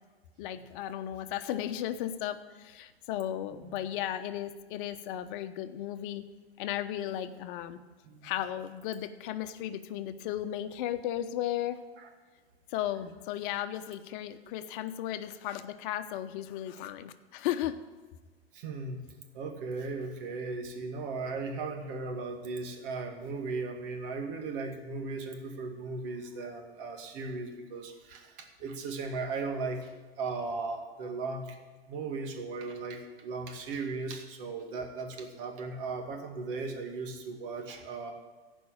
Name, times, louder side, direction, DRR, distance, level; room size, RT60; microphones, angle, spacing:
voice 1, 0.4-6.3 6.6-7.8 8.2-11.8 12.7-17.8, left 12 dB, 55° left, 10 dB, 1.0 m, -35 dB
voice 2, 3.5-3.8 8.0-8.3 12.0-12.1 18.5-19.0 19.3-31.6 31.9-38.1, right 3 dB, 55° right, 3 dB, 2.4 m, -37 dB
15.0 x 5.5 x 8.8 m, 1.3 s
hypercardioid pair, 110°, 32 cm